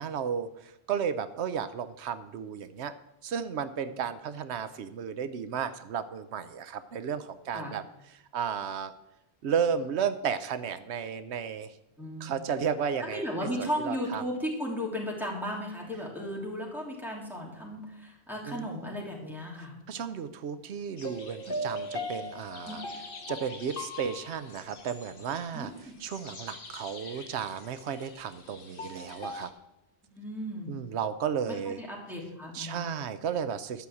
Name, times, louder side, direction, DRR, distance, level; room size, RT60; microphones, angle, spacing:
voice 1, 0.0-2.9 3.2-7.8 8.3-8.9 9.4-11.7 12.2-13.3 13.6-14.2 18.5-18.9 19.9-22.8 23.3-25.7 26.0-29.5 30.7-31.8 32.5-33.9, right 7 dB, 85° right, 12 dB, 1.0 m, -33 dB
voice 2, 12.0-12.4 13.0-19.7 22.6-22.8 25.5-25.9 30.1-30.7 31.7-32.9, equal, ahead, -2 dB, 3.1 m, -35 dB
sound 1, 21.0-29.5, left 1 dB, 55° left, 1.5 m, -40 dB
11.5 x 6.2 x 8.3 m, 0.86 s
omnidirectional pair, 1.1 m